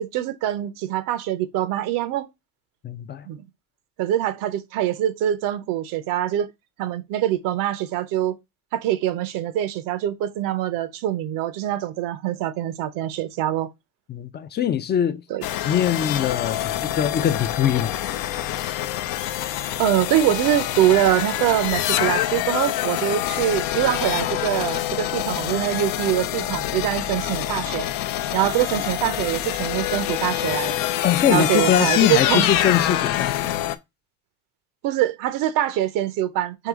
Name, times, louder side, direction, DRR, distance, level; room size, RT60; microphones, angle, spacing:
voice 1, 0.0-2.3 3.2-3.4 4.0-6.5 6.8-8.3 8.7-13.7 15.3-15.4 19.8-27.9 28.3-30.8 31.3-32.5 34.8-36.7, right 12 dB, 85° right, 0.6 m, -24 dB
voice 2, 2.8-3.2 14.1-15.2 15.6-17.9 31.0-33.7, left 9 dB, 35° left, 0.4 m, -22 dB
sound 1, 15.4-33.8, left 13 dB, 80° left, 0.5 m, -26 dB
4.6 x 3.0 x 3.6 m
cardioid pair, 120°, 32 cm